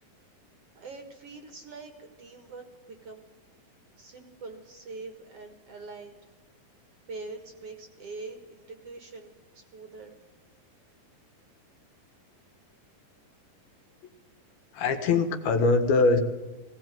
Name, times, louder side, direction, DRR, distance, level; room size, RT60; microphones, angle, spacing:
voice 1, 0.8-3.3 4.0-6.2 7.1-10.2, right 3 dB, 50° right, 6 dB, 2.2 m, -44 dB
voice 2, 14.7-16.2, left 3 dB, 80° left, 7 dB, 3.5 m, -22 dB
19.0 x 17.5 x 9.2 m, 1.1 s
omnidirectional pair, 4.3 m